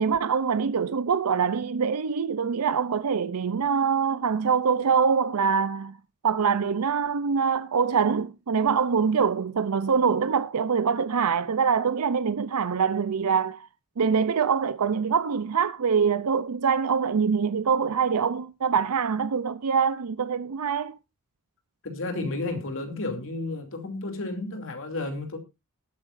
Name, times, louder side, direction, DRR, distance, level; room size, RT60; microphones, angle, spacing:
voice 1, 0.0-5.9 6.2-13.7 14.0-21.0, right 6 dB, 90° right, 0.6 m, -24 dB
voice 2, 21.8-25.4, left 2 dB, 60° left, 2.8 m, -32 dB
19.5 x 8.9 x 2.6 m
head